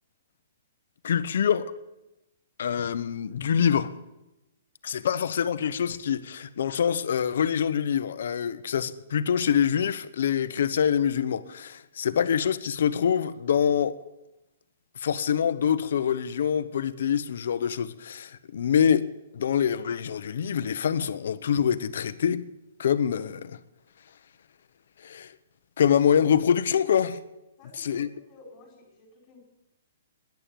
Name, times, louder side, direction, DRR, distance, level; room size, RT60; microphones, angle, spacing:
voice 1, 1.0-1.7 2.6-3.9 4.8-14.0 15.0-19.1 19.3-22.4 22.8-23.6 25.0-25.3 25.8-27.2 27.8-28.1, left 8 dB, 65° left, 1.0 m, -25 dB
voice 2, 27.6-29.4, left 3 dB, 20° left, 5.1 m, -53 dB
14.0 x 11.0 x 9.2 m
hypercardioid pair, 170°, 0 cm